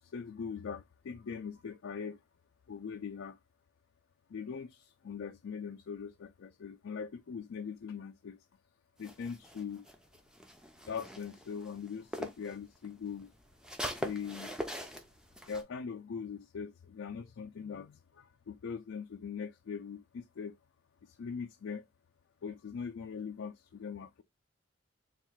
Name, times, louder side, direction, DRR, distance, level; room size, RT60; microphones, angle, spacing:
voice 1, 0.0-2.2 2.7-3.4 4.3-8.4 9.0-9.9 10.9-13.3 14.0-14.5 15.4-20.6 21.0-21.9 22.4-24.2, left 6 dB, 90° left, 0.4 m, -41 dB
sound 1, 9.0-12.5 12.8-15.6, equal, 5° right, 0.4 m, -42 dB
3.6 x 2.4 x 4.4 m
head